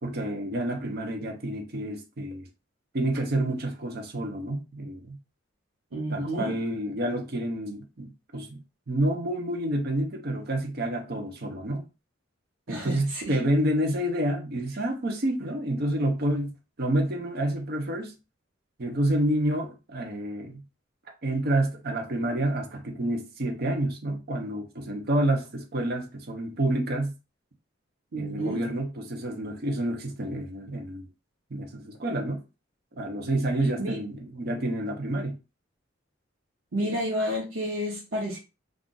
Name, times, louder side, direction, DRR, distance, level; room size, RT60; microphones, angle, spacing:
voice 1, 0.0-2.5 2.9-5.2 6.1-8.6 8.9-11.9 12.7-16.5 16.8-18.1 18.8-20.6 21.2-27.1 28.1-31.1 31.5-32.4 33.0-35.4, right 1 dB, 50° right, 0.7 m, -29 dB
voice 2, 5.9-6.5 12.7-13.4 28.1-28.6 33.8-34.0 36.7-38.4, equal, 85° right, 0.9 m, -30 dB
2.5 x 2.4 x 3.8 m
head